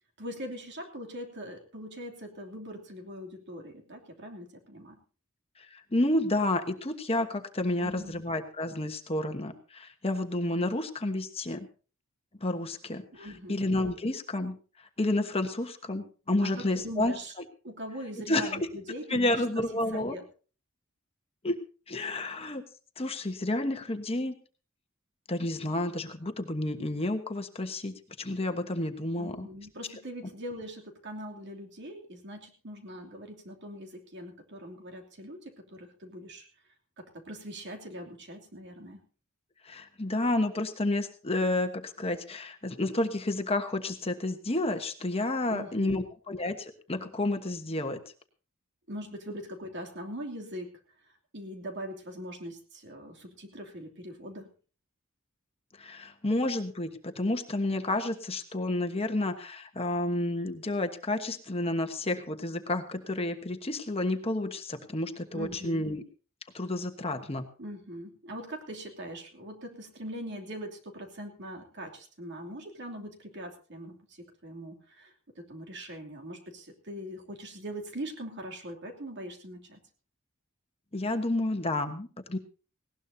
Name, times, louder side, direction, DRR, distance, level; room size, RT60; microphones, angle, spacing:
voice 1, 0.2-5.0 7.8-8.2 13.1-13.7 16.4-17.3 17.6-19.6 19.9-20.2 29.2-36.5 37.0-39.0 45.5-46.0 48.9-50.8 51.3-54.5 65.3-65.9 67.6-79.8, equal, 55° right, 3 dB, 2.9 m, -42 dB
voice 2, 5.7-11.7 12.4-14.6 15.0-17.2 18.3-18.6 19.1-20.1 21.4-21.6 21.9-22.6 23.0-24.3 25.3-29.5 39.6-48.0 55.8-66.0 66.5-67.4 80.9-82.4, left 2 dB, 30° left, 6 dB, 1.2 m, -30 dB
19.0 x 17.5 x 2.8 m, 0.37 s
head